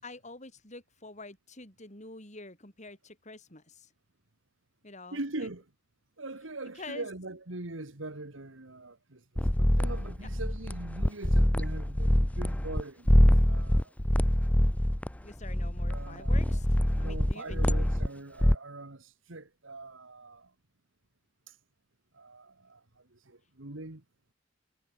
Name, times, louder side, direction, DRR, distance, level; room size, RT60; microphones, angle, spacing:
voice 1, 0.0-3.9 4.8-5.5 6.8-7.1 15.2-16.7 17.0-17.9, left 2 dB, 35° left, 6.9 m, -47 dB
voice 2, 5.1-5.7 6.2-9.2 9.6-13.9 15.9-20.5 21.5-21.6 22.1-24.0, right 2 dB, 80° right, 2.1 m, -42 dB
sound 1, 9.4-12.8 13.1-18.1 18.4-18.5, equal, 5° left, 0.6 m, -25 dB
head